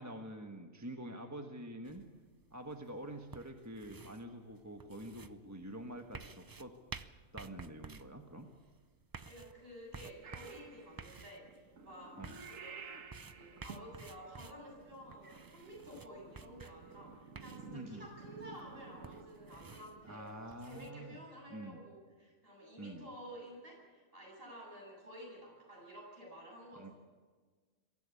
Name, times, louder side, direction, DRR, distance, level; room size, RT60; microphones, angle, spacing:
voice 1, 0.0-2.0 2.5-6.7 7.3-8.5 12.2-12.4 17.7-18.1 20.0-21.2 21.5-21.8 22.8-23.1 26.7-26.9, right 1 dB, 15° right, 4 dB, 1.3 m, -46 dB
sound 1, 1.9-20.9, right 4 dB, 30° right, 0.4 m, -54 dB
voice 2, 9.2-12.8 13.3-26.9, equal, 45° right, -2 dB, 8.0 m, -52 dB
Purr / Meow, 10.2-20.2, right 5 dB, 80° right, 1.7 m, -53 dB
23.0 x 15.5 x 8.4 m, 1.4 s
omnidirectional pair, 1.3 m